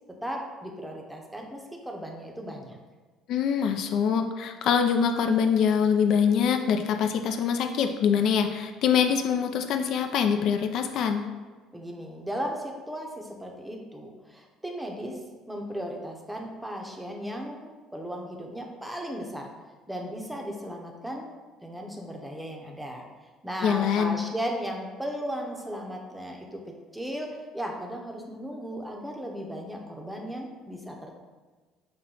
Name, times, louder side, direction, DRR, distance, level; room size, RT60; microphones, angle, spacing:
voice 1, 0.1-2.8 11.7-15.2 15.5-19.5 19.9-21.3 21.6-23.0 23.4-26.6 26.9-31.2, equal, 5° right, 1 dB, 0.7 m, -36 dB
voice 2, 3.3-11.2 23.6-24.2, left 7 dB, 65° left, 6 dB, 0.3 m, -24 dB
5.6 x 2.1 x 3.8 m, 1.4 s
cardioid pair, 110°, 0 cm